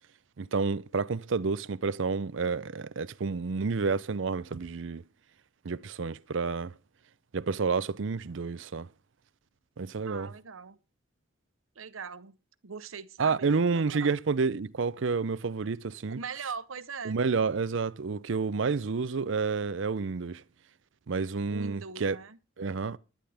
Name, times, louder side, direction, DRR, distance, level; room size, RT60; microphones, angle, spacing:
voice 1, 0.4-5.0 5.6-6.7 7.3-8.9 9.8-10.3 13.2-16.2 17.0-20.4 21.1-22.2 22.6-23.0, right 4 dB, 70° right, 0.5 m, -29 dB
voice 2, 10.1-10.8 11.8-12.4 12.6-14.1 16.1-17.2 21.5-22.4, right 5 dB, 90° right, 0.9 m, -41 dB
16.5 x 11.5 x 3.4 m
head